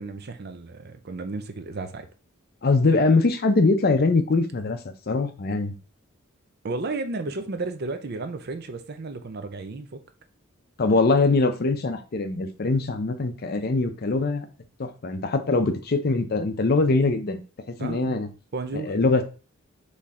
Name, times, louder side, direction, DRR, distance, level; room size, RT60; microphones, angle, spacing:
voice 1, 0.0-2.1 6.6-10.0 17.8-18.2 18.5-18.9, right 3 dB, 50° right, 0.5 m, -33 dB
voice 2, 2.6-4.8 5.1-5.7 10.8-14.5 14.8-17.4 17.7-18.3 18.7-19.2, left 3 dB, 45° left, 0.6 m, -22 dB
4.2 x 3.2 x 3.6 m
head